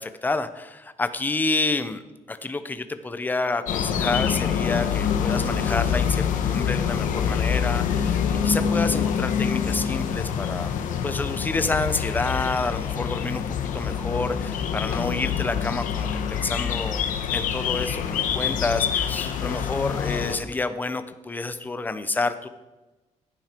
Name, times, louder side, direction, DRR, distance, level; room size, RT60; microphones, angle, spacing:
voice 1, 0.0-2.0 2.3-10.8 11.0-17.0 17.3-22.5, left 3 dB, 15° left, 11 dB, 0.7 m, -29 dB
sound 1, 3.7-20.4, left 8 dB, 75° left, 1.2 m, -26 dB
15.5 x 9.3 x 4.5 m, 1.1 s
cardioid pair, 170°, 13 cm